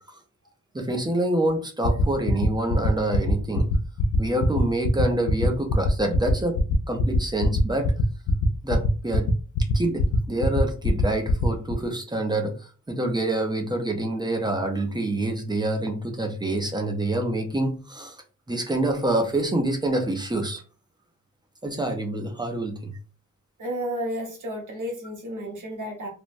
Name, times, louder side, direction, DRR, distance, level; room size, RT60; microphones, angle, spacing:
voice 1, 0.7-3.7 4.2-6.6 6.9-7.9 8.6-9.3 9.7-18.2 18.5-20.6 21.6-22.9, right 1 dB, 15° right, 4 dB, 0.4 m, -26 dB
sound 1, 1.8-11.7, left 3 dB, 80° left, 0.5 m, -23 dB
voice 2, 23.6-26.1, equal, 65° right, -1 dB, 1.0 m, -32 dB
3.2 x 2.0 x 2.5 m, 0.36 s
wide cardioid pair, 180°, 33 cm